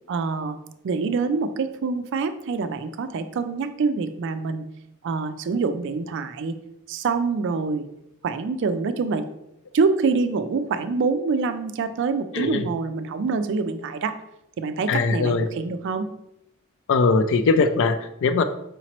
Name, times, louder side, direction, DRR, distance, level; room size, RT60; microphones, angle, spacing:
voice 1, 0.1-0.6 0.8-4.7 5.0-6.6 6.9-7.9 8.2-9.2 9.7-14.2 14.6-16.1, right 4 dB, 60° right, 10 dB, 0.3 m, -25 dB
voice 2, 12.3-12.7 14.9-15.5 16.9-18.4, left 4 dB, 60° left, 10 dB, 0.3 m, -21 dB
4.9 x 2.9 x 2.9 m, 0.81 s
head